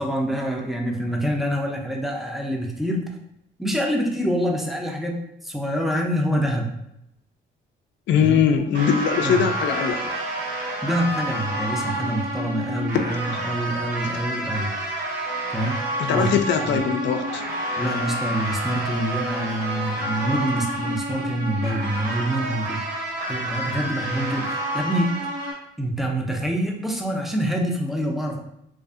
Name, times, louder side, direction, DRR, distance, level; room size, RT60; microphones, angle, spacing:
voice 1, 0.0-3.0 3.6-5.2 5.4-6.7 8.2-8.4 9.2-9.4 10.8-14.7 15.5-15.8 16.1-16.3 16.6-16.8 17.8-22.8 23.3-25.1 25.8-28.4, equal, ahead, 0 dB, 0.5 m, -26 dB
voice 2, 8.1-10.1 16.0-17.4, left 7 dB, 65° left, 7 dB, 0.4 m, -21 dB
sound 1, 8.7-25.5, right 1 dB, 60° right, 1.1 m, -29 dB
2.6 x 2.5 x 2.4 m, 0.81 s
cardioid pair, 90°, 20 cm